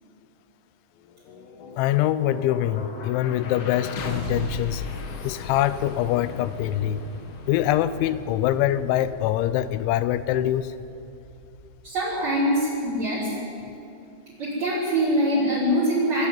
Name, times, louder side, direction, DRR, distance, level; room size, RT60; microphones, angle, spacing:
sound 1, 1.0-13.1, left 2 dB, 70° left, 4.0 m, -38 dB
voice 1, 1.8-4.8 5.2-7.0 7.5-10.7, left 12 dB, 90° left, 13 dB, 3.1 m, -24 dB
voice 2, 11.8-13.3 14.4-16.3, equal, 40° right, -8 dB, 5.7 m, -23 dB
27.5 x 13.5 x 9.2 m, 2.6 s
omnidirectional pair, 5.2 m